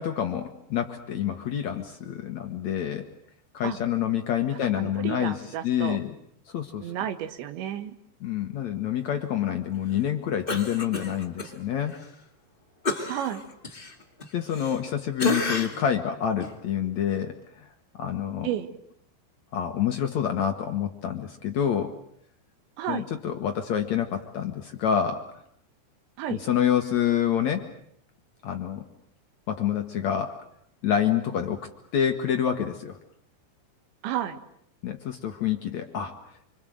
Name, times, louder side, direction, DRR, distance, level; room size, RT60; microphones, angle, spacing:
voice 1, 0.0-3.1 3.5-5.4 5.6-6.1 6.5-6.9 8.2-12.0 14.3-17.7 18.0-18.5 19.5-21.9 22.9-25.2 26.3-27.7 28.4-28.8 29.5-30.4 30.8-33.0 34.8-36.2, left 9 dB, 65° left, 5 dB, 1.8 m, -27 dB
voice 2, 4.8-6.0 6.8-8.0 13.1-13.4 18.4-18.7 22.8-23.1 26.2-26.4 34.0-34.4, right 11 dB, 80° right, 10 dB, 3.8 m, -31 dB
Cough, 10.5-11.5 11.9-12.0 12.8-14.9 15.2-15.9 16.4-16.5, left 2 dB, 20° left, 1.4 m, -30 dB
27.5 x 25.5 x 7.8 m, 0.69 s
omnidirectional pair, 5.1 m